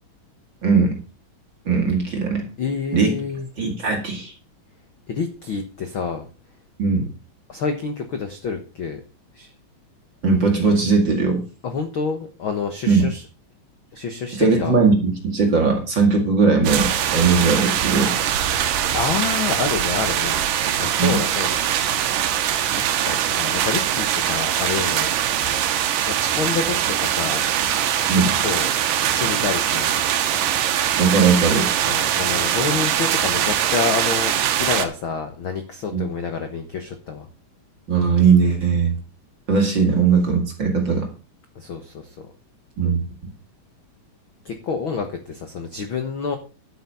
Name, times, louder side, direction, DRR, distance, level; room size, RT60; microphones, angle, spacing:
voice 1, 0.6-1.0 1.7-2.4 2.9-3.1 3.6-4.3 6.8-7.1 10.2-11.4 12.9-13.1 14.3-18.1 21.0-21.2 28.1-28.3 31.0-31.7 35.9-36.0 37.9-39.0 39.5-41.1 42.8-43.0, right 5 dB, 35° right, 2 dB, 2.2 m, -19 dB
voice 2, 2.6-3.5 5.1-6.3 7.5-9.0 9.3-9.5 11.6-13.2 13.9-14.8 18.9-20.4 20.8-21.6 22.8-25.1 26.1-27.4 28.1-28.7 29.0-29.9 31.9-37.2 41.5-42.1 44.4-46.4, left 5 dB, 75° left, 6 dB, 1.1 m, -28 dB
sound 1, 16.6-34.9, right 10 dB, 70° right, 2.5 m, -22 dB
10.5 x 8.4 x 5.5 m, 0.35 s
omnidirectional pair, 4.3 m